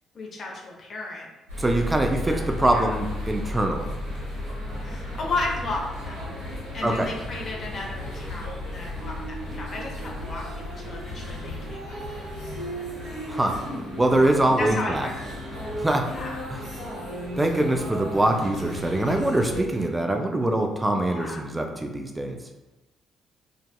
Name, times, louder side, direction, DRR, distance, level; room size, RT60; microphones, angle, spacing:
voice 1, 0.1-1.3 2.3-2.4 2.7-3.0 4.8-6.4 6.7-12.0 14.6-15.3 16.0-16.5 21.1-21.5, left 2 dB, 45° left, -1 dB, 0.6 m, -34 dB
sound 1, 1.5-19.8, left 1 dB, 85° right, 0.9 m, -34 dB
voice 2, 1.6-3.9 6.8-7.1 13.3-13.6 14.0-15.1 15.8-16.1 16.5-16.6 17.4-22.4, right 1 dB, 20° right, 4 dB, 0.3 m, -23 dB
2.6 x 2.4 x 2.2 m, 1.0 s
figure-of-eight pair, 45°, 0 cm